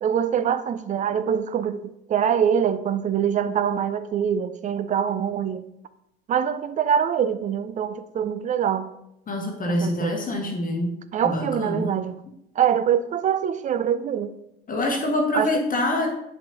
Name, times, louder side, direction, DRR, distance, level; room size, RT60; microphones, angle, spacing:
voice 1, 0.0-5.7 6.3-8.9 9.7-10.2 11.1-12.2 12.6-14.3 15.3-15.5, right 8 dB, 25° right, 0.4 m, -24 dB
voice 2, 9.3-11.0 11.2-12.0 14.7-16.1, left 1 dB, 25° left, 1.2 m, -25 dB
9.0 x 6.0 x 2.9 m
figure-of-eight pair, 60°, 30 cm